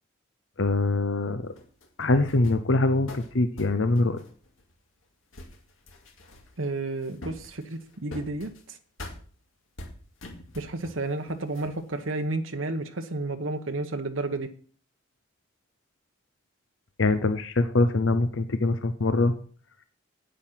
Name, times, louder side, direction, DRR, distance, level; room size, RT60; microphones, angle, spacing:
voice 1, 0.6-1.5 2.0-4.2 17.0-19.3, left 2 dB, 75° left, 10 dB, 0.8 m, -23 dB
sound 1, 1.6-2.7 3.1-5.0 5.3-6.8 7.0-8.6 9.0-9.2 9.8-11.0 11.3-12.1, left 1 dB, 90° left, 2.4 m, -44 dB
voice 2, 6.6-8.8 10.5-14.5, right 2 dB, 85° right, 6 dB, 1.3 m, -31 dB
9.2 x 8.7 x 5.9 m, 0.42 s
head